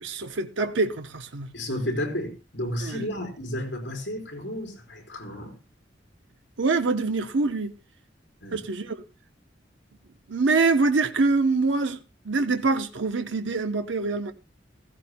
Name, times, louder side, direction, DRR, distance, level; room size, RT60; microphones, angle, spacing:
voice 1, 0.0-1.5 2.8-3.0 6.6-7.8 8.5-9.0 10.3-12.0 12.2-14.3, right 3 dB, 90° right, 0.8 m, -25 dB
voice 2, 1.5-5.5 8.4-8.6, equal, 75° left, 4.0 m, -32 dB
16.0 x 15.5 x 2.2 m
head